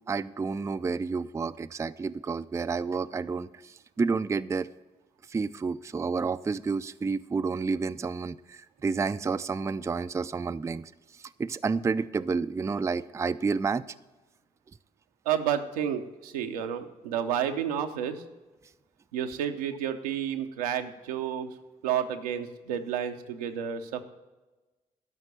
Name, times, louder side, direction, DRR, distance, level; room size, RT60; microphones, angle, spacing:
voice 1, 0.1-4.7 5.3-10.9 11.2-13.8, right 4 dB, 15° right, 13 dB, 0.3 m, -30 dB
voice 2, 15.2-18.2 19.1-21.5 21.8-24.0, right 9 dB, 80° right, 6 dB, 0.6 m, -30 dB
12.0 x 5.8 x 6.8 m, 1.1 s
hypercardioid pair, 45°, 19 cm